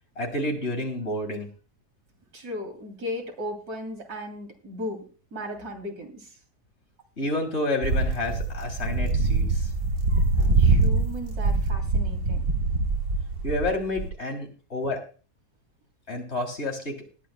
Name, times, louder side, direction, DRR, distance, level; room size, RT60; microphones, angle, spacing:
voice 1, 0.2-1.5 7.2-9.7 13.4-15.0 16.1-17.0, left 1 dB, 45° left, 3 dB, 3.3 m, -29 dB
voice 2, 2.3-6.3 10.1-12.5, left 1 dB, 70° right, 4 dB, 3.1 m, -36 dB
sound 1, 7.8-14.1, right 3 dB, 55° right, 1.8 m, -24 dB
19.5 x 11.5 x 2.2 m, 0.37 s
omnidirectional pair, 1.7 m